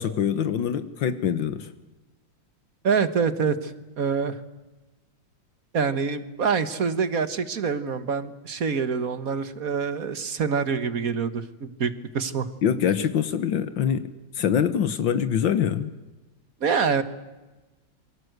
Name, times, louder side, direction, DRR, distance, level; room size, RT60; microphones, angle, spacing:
voice 1, 0.0-1.7 12.6-14.1 14.4-15.9, left 8 dB, 75° left, 12 dB, 1.8 m, -24 dB
voice 2, 2.8-4.4 5.7-12.5 16.6-17.0, right 5 dB, 50° right, 13 dB, 1.8 m, -26 dB
27.5 x 23.5 x 8.0 m, 1.1 s
omnidirectional pair, 2.1 m